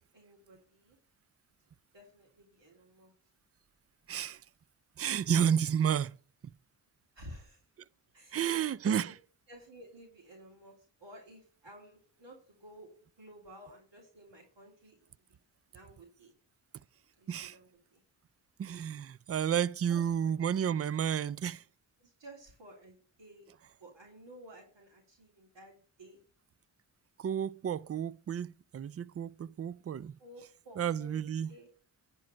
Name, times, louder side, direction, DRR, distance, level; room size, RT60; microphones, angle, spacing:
voice 1, 0.1-1.0 1.9-3.1 7.1-7.6 8.1-8.6 8.8-9.2 9.5-12.9 13.2-15.0 15.3-15.4 15.7-16.3 17.2-18.0 19.9-20.3 22.0-23.5 23.8-26.2 30.2-31.7, right 1 dB, 65° right, 3.4 m, -54 dB
voice 2, 4.1-4.4 5.0-6.2 8.3-9.1 17.3-17.6 18.6-21.6 27.2-30.2 30.8-31.5, right 8 dB, 30° right, 0.4 m, -31 dB
10.5 x 4.7 x 6.2 m
supercardioid pair, 40°, 48 cm